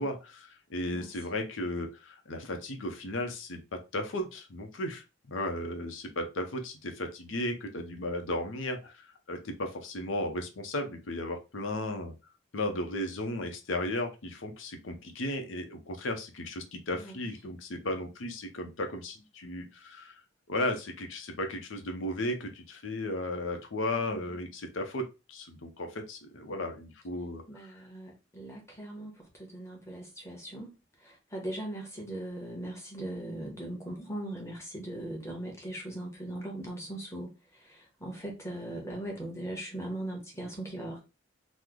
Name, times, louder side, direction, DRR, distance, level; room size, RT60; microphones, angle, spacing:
voice 1, 0.0-12.1 12.5-20.1 20.5-27.4, left 1 dB, 75° left, 0.7 m, -35 dB
voice 2, 23.9-24.4 27.5-30.7 31.0-41.0, right 1 dB, 15° left, 1.0 m, -39 dB
3.1 x 2.0 x 3.6 m
head